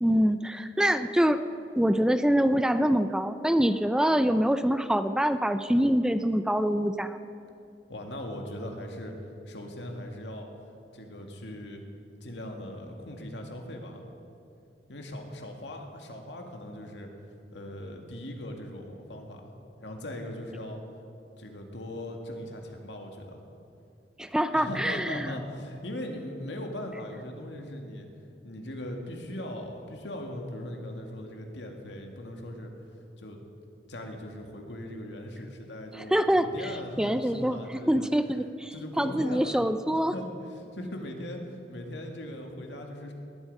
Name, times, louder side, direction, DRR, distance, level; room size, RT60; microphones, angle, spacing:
voice 1, 0.0-1.4 1.8-7.2 24.2-25.4 35.9-40.1, equal, 5° right, 10 dB, 0.4 m, -25 dB
voice 2, 7.9-9.1 9.5-10.5 10.9-11.8 12.2-14.0 14.9-17.1 17.5-19.5 19.8-20.8 21.4-23.4 24.5-28.1 28.4-32.7 33.2-33.4 33.9-38.1 38.7-40.3 40.6-43.1, left 1 dB, 90° left, 2 dB, 2.0 m, -39 dB
19.0 x 11.5 x 5.4 m, 2.6 s
head